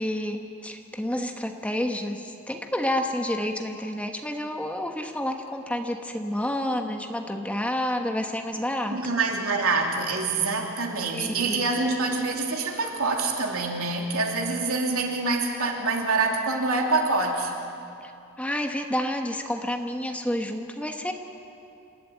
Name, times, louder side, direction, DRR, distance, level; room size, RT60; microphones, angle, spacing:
voice 1, 0.0-9.1 11.1-11.6 18.0-18.1 18.4-21.1, left 1 dB, 5° left, 4 dB, 1.2 m, -29 dB
voice 2, 8.9-17.5, right 3 dB, 90° right, 1 dB, 2.9 m, -26 dB
27.5 x 12.0 x 9.2 m, 2.6 s
head